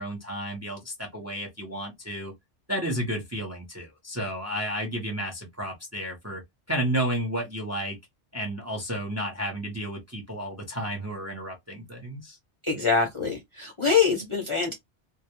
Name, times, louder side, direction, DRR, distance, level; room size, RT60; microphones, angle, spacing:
voice 1, 0.0-2.3 2.7-6.4 6.7-8.0 8.3-12.4, right 1 dB, 20° right, 0.5 m, -32 dB
voice 2, 12.6-14.7, left 5 dB, 40° left, 0.5 m, -24 dB
2.3 x 2.0 x 2.8 m
omnidirectional pair, 1.1 m